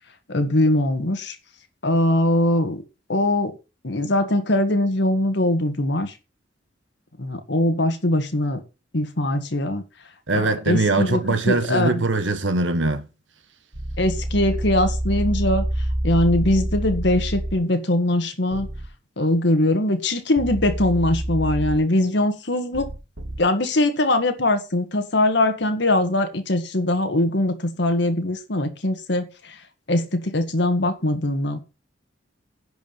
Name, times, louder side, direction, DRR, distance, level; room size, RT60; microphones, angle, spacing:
voice 1, 0.3-1.4 1.8-2.8 3.1-3.5 3.8-6.1 7.2-8.6 8.9-9.8 10.3-12.0 14.0-15.6 16.0-18.7 19.2-22.9 23.4-29.6 29.9-31.6, left 1 dB, 65° left, 1.6 m, -21 dB
voice 2, 10.3-13.1, right 2 dB, 75° right, 1.4 m, -22 dB
sound 1, 13.7-17.6 18.5-18.9 20.4-21.8 22.7-23.4, right 1 dB, 90° right, 2.8 m, -27 dB
11.0 x 5.0 x 7.0 m
head